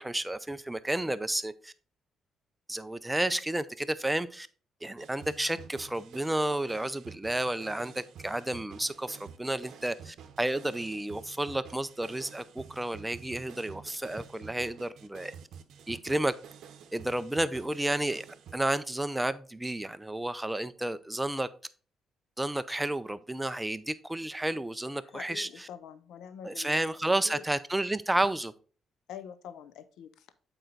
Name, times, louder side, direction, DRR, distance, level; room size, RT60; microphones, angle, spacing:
voice 1, 0.0-1.7 2.7-4.5 4.8-15.3 15.9-16.3 16.9-18.2 18.5-21.5 22.4-25.7 26.4-28.5, right 1 dB, 10° right, 13 dB, 0.5 m, -31 dB
sound 1, 5.0-18.5, right 8 dB, 75° right, 0.8 m, -49 dB
voice 2, 25.0-26.9 27.2-27.4 29.1-30.3, left 9 dB, 85° left, 13 dB, 0.5 m, -45 dB
7.7 x 4.4 x 3.9 m, 0.40 s
cardioid pair, 90°, 0 cm